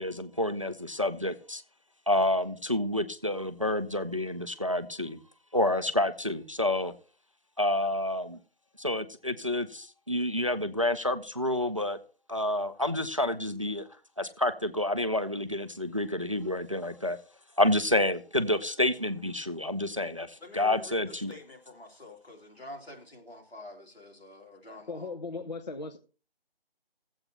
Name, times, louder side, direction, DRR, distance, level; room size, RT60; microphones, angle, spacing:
voice 1, 0.0-1.6 2.1-5.2 5.5-6.9 7.6-8.4 8.8-12.0 12.3-13.9 14.2-17.2 17.6-21.4, left 1 dB, 35° right, 0.4 m, -29 dB
voice 2, 20.4-21.0 21.3-25.1, left 1 dB, 85° left, 2.9 m, -47 dB
voice 3, 24.7-26.0, left 3 dB, 45° left, 0.6 m, -38 dB
15.5 x 7.9 x 2.8 m
figure-of-eight pair, 160°, 30 cm